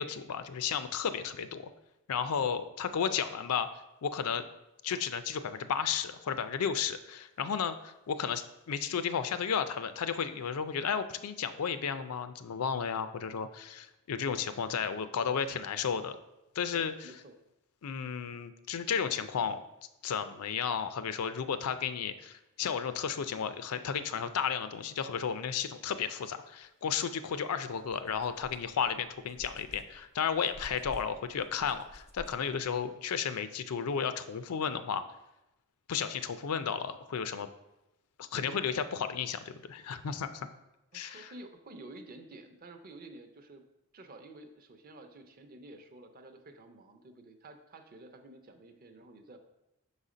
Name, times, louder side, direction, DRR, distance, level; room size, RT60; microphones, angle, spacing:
voice 1, 0.0-1.7 2.1-3.7 4.0-4.4 4.8-16.2 16.6-17.1 17.8-19.6 20.0-35.0 35.9-37.5 38.2-40.5 40.9-41.3, left 7 dB, 85° left, 11 dB, 0.5 m, -33 dB
voice 2, 2.2-2.6 16.6-17.4 38.3-38.6 40.9-43.6 43.9-49.4, right 2 dB, 40° right, 6 dB, 0.6 m, -51 dB
sound 1, 27.3-27.4 27.8-32.9, left 1 dB, 15° left, 0.3 m, -52 dB
5.7 x 4.1 x 5.0 m, 0.93 s
head